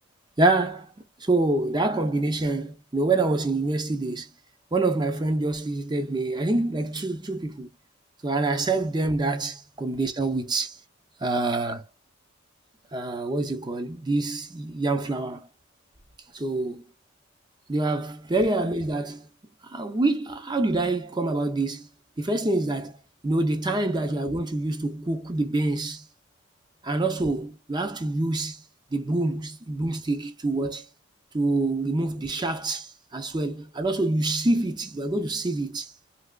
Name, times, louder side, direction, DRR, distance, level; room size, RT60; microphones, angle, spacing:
voice 1, 0.4-0.9 1.2-4.3 4.7-7.7 8.2-10.7 11.2-11.8 12.9-15.5 16.3-16.8 17.7-19.3 19.6-21.9 22.2-23.0 23.2-26.1 26.8-28.6 28.9-30.9 31.3-35.9, right 2 dB, 20° right, 0.5 m, -26 dB
3.3 x 2.9 x 2.3 m
head